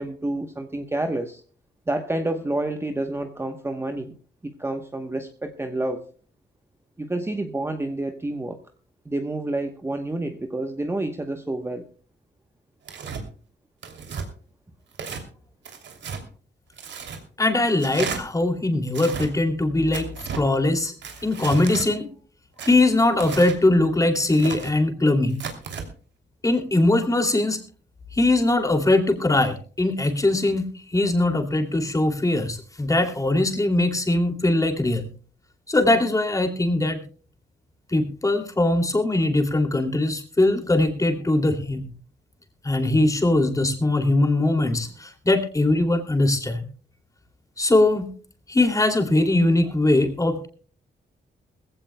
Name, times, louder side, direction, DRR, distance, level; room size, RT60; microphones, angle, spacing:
voice 1, 0.0-1.4 1.9-4.2 4.4-6.1 7.0-8.6 9.0-11.9, right 2 dB, 15° right, 6 dB, 1.0 m, -29 dB
Tearing, 12.9-13.2 13.8-14.3 14.9-15.2 15.7-16.2 16.8-17.2 17.8-18.2 18.9-19.3 19.9-20.4 21.0-21.9 22.6-23.6 24.1-24.7 25.3-25.9, right 6 dB, 80° right, 2.9 m, -34 dB
voice 2, 17.4-20.9 21.2-22.1 22.6-25.4 26.4-27.6 28.1-35.1 35.7-37.0 37.9-41.9 42.6-46.7 47.6-48.1 48.5-50.5, left 2 dB, 20° left, 5 dB, 2.7 m, -21 dB
21.0 x 16.0 x 2.2 m, 0.40 s
wide cardioid pair, 125°, 18 cm